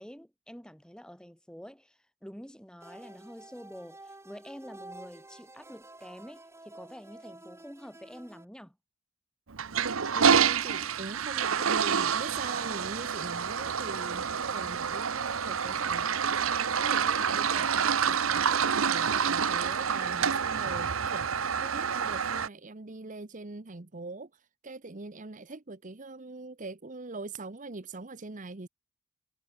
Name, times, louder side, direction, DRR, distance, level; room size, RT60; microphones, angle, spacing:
voice 1, 0.0-8.8, equal, 5° left, 3.6 m, -47 dB
sound 1, 2.8-8.4, right 2 dB, 15° right, 7.8 m, -50 dB
Toilet flush, 9.5-22.5, right 7 dB, 90° right, 0.9 m, -28 dB
voice 2, 10.1-28.7, right 3 dB, 40° right, 1.0 m, -42 dB
head